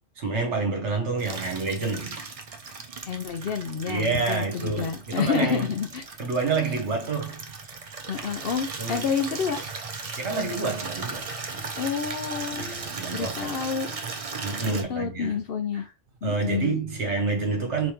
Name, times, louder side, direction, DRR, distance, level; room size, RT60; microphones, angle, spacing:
voice 1, 0.2-2.2 3.9-5.7 6.2-7.4 8.8-9.0 10.2-11.6 12.5-13.5 14.4-15.4 15.7-15.8 16.2-17.9, right 4 dB, 65° right, 1.4 m, -28 dB
Water tap faucet / Liquid, 1.2-14.8, right 4 dB, 40° right, 0.5 m, -37 dB
voice 2, 3.1-6.0 8.1-9.6 11.8-12.7 13.1-13.9 14.7-15.8 16.2-16.7, left 6 dB, 60° left, 0.7 m, -29 dB
4.2 x 3.3 x 3.1 m
omnidirectional pair, 1.3 m